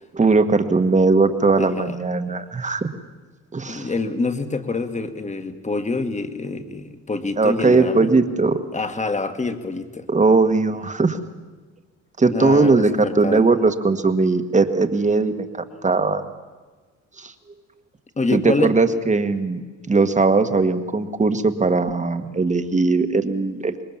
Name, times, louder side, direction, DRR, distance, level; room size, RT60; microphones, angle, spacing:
voice 1, 0.1-2.9 3.5-3.9 7.4-8.6 10.1-11.2 12.2-16.2 17.2-17.3 18.3-23.8, right 3 dB, 25° right, 9 dB, 1.6 m, -19 dB
voice 2, 1.6-2.0 3.7-8.1 8.7-10.0 12.3-13.4 18.2-18.8, left 3 dB, 25° left, 8 dB, 1.8 m, -26 dB
26.0 x 21.5 x 7.3 m, 1.3 s
cardioid pair, 90°, 30 cm